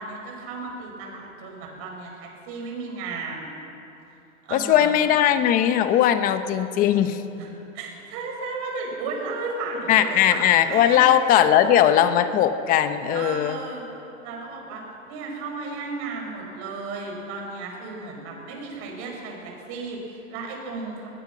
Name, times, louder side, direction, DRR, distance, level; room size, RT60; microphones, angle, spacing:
voice 1, 0.0-3.5 4.4-5.0 7.4-7.5 7.7-11.1 11.5-11.6 13.1-13.8 14.2-21.1, right 3 dB, 35° right, 0 dB, 5.9 m, -34 dB
voice 2, 4.5-7.2 9.9-13.6, left 10 dB, 20° left, 10 dB, 0.9 m, -19 dB
21.5 x 20.5 x 6.2 m, 2.9 s
hypercardioid pair, 150°, 41 cm